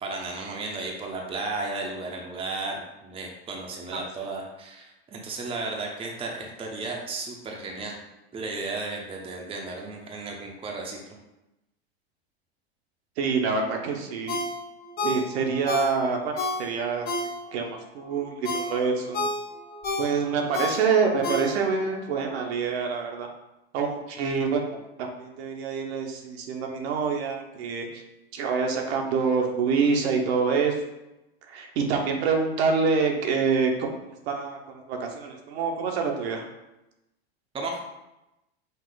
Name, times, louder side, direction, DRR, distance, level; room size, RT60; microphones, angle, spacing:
voice 1, 0.0-8.0 8.3-11.2 37.5-37.8, right 3 dB, 15° right, 0 dB, 0.7 m, -34 dB
voice 2, 13.2-14.4 15.0-16.3 16.6-17.1 17.5-17.7 17.9-19.3 20.0-23.3 23.7-24.6 25.0-27.9 28.3-30.7 31.5-33.9 34.3-36.4, right 5 dB, 70° right, 2 dB, 1.0 m, -26 dB
Ringtone, 14.3-17.7 18.1-21.9 22.3-22.4, left 2 dB, 30° left, 0.8 m, -31 dB
5.5 x 2.4 x 3.9 m, 0.94 s
supercardioid pair, 115°, 33 cm